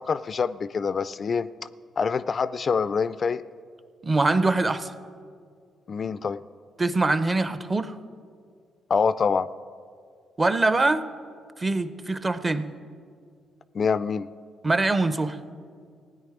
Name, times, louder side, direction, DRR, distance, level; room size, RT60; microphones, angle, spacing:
voice 1, 0.0-1.5 2.0-3.4 5.9-6.4 8.9-9.5 13.7-14.3, left 5 dB, 45° left, 16 dB, 0.3 m, -25 dB
voice 2, 4.0-4.9 6.8-8.0 10.4-11.0 11.6-12.7 14.6-15.4, right 2 dB, 25° right, 13 dB, 0.6 m, -23 dB
16.5 x 9.4 x 4.8 m, 2.1 s
cardioid pair, 90°, 0 cm